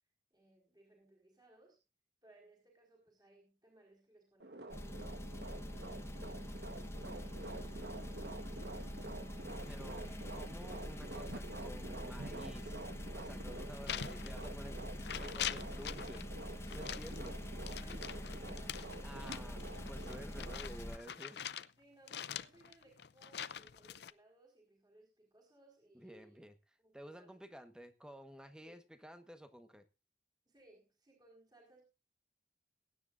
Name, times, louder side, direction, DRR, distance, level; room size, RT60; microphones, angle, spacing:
voice 1, 0.3-1.8 2.2-7.9 8.5-9.0 9.9-10.2 17.0-19.4 20.2-20.4 21.8-26.4 26.8-27.4 28.6-28.8 30.5-31.8, right 2 dB, 25° right, -1 dB, 4.7 m, -64 dB
sound 1, 4.4-20.6, right 2 dB, 65° right, 1.3 m, -49 dB
sound 2, 4.7-21.0, left 1 dB, 15° left, 1.1 m, -45 dB
voice 2, 9.7-10.0 10.3-12.9 13.1-14.8 15.2-16.3 16.7-17.3 19.0-19.6 19.9-21.4 25.9-26.6 26.9-29.8, equal, 5° right, 8 dB, 1.3 m, -52 dB
sound 3, 13.9-14.7 15.0-16.3 16.7-21.7 22.1-24.1, left 9 dB, 65° left, 0.5 m, -44 dB
22.0 x 10.0 x 2.6 m, 0.28 s
head